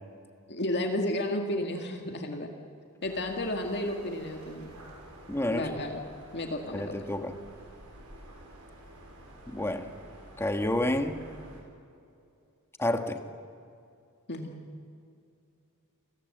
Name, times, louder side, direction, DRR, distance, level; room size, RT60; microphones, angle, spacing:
voice 1, 0.5-2.5 3.0-4.7 5.5-6.0 6.3-6.9 14.3-14.5, left 1 dB, 50° left, 3 dB, 2.1 m, -32 dB
sound 1, 3.0-11.6, right 1 dB, 85° right, 5.8 m, -50 dB
voice 2, 5.3-5.7 6.7-7.3 9.5-9.9 10.4-11.1 12.8-13.2, left 1 dB, 10° left, 6 dB, 1.5 m, -29 dB
29.5 x 20.5 x 8.0 m, 2.6 s
head